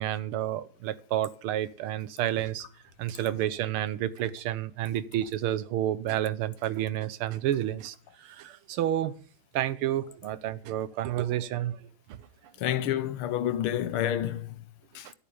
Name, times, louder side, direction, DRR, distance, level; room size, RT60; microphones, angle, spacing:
voice 1, 0.0-2.7 3.0-8.0 8.2-9.1 9.5-11.8 15.0-15.1, right 12 dB, 85° right, 1.8 m, -30 dB
voice 2, 12.6-14.5 15.0-15.1, left 11 dB, 80° left, 1.7 m, -29 dB
13.0 x 8.7 x 7.1 m
omnidirectional pair, 2.4 m